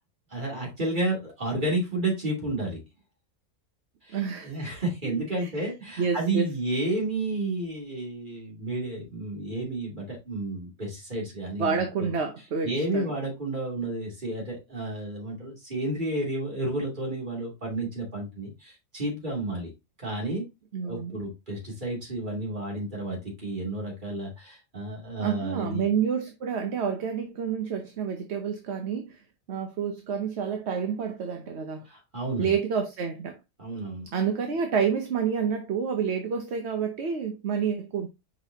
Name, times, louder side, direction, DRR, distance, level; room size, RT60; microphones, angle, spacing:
voice 1, 0.3-2.8 4.0-12.1 12.6-19.7 20.0-20.4 20.8-25.8 31.9-32.5 33.6-34.1, right 2 dB, 35° right, 3.0 m, -31 dB
voice 2, 4.1-4.6 5.0-5.7 6.0-6.5 11.6-13.1 20.7-21.2 25.2-29.2 29.5-31.8 32.4-33.4 34.1-38.1, right 6 dB, 60° right, 1.1 m, -29 dB
6.3 x 5.3 x 2.8 m
omnidirectional pair, 1.3 m